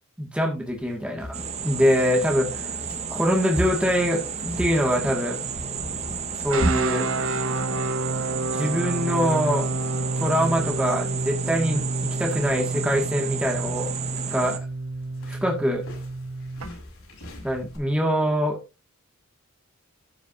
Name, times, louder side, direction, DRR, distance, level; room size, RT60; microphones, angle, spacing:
voice 1, 0.2-1.4 1.6-2.7 3.1-4.2 4.6-5.4 6.4-7.1 8.5-9.7 10.2-11.9 12.2-13.9 14.3-14.6 15.3-15.8 17.4-18.6, equal, 5° right, 0 dB, 2.0 m, -23 dB
sound 1, 0.6-17.8, equal, 65° left, 6.8 m, -38 dB
sound 2, 1.3-14.6, right 6 dB, 30° right, 1.6 m, -32 dB
sound 3, 6.5-16.7, right 2 dB, 65° right, 1.4 m, -29 dB
13.0 x 9.2 x 2.7 m, 0.28 s
head